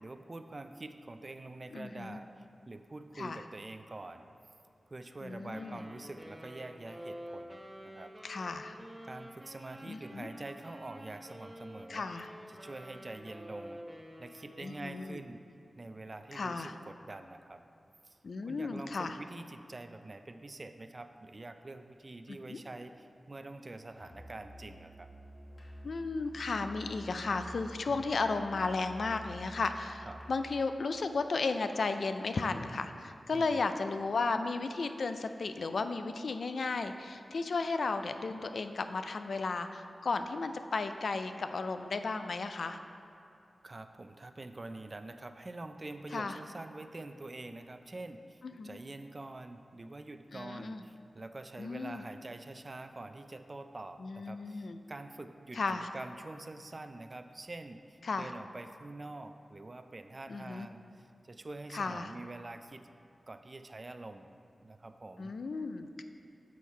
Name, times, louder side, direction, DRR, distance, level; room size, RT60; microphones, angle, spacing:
voice 1, 0.0-4.3 4.9-8.1 9.0-12.0 12.5-13.8 14.2-15.4 15.8-17.6 18.0-25.1 27.9-28.1 30.1-30.2 33.3-33.6 43.6-62.9 63.3-64.3 64.6-65.3, right 2 dB, 40° right, 8 dB, 0.3 m, -46 dB
voice 2, 1.7-2.2 3.2-3.4 5.2-5.8 8.2-8.8 9.8-10.3 11.9-12.3 14.6-15.2 16.3-16.7 18.2-19.2 22.5-22.6 25.8-42.8 46.1-46.4 48.4-48.8 50.3-50.8 51.6-52.0 54.0-54.8 55.5-55.9 58.0-58.3 60.3-60.7 61.7-62.1 65.2-66.0, left 3 dB, 80° left, 8 dB, 0.3 m, -34 dB
Wind instrument woodwind instrument, 5.5-15.1, equal, 10° right, 0.7 m, -49 dB
Musical instrument, 23.9-30.7, equal, 55° left, 1.2 m, -50 dB
7.0 x 4.6 x 4.4 m, 2.5 s
cardioid pair, 60°, 0 cm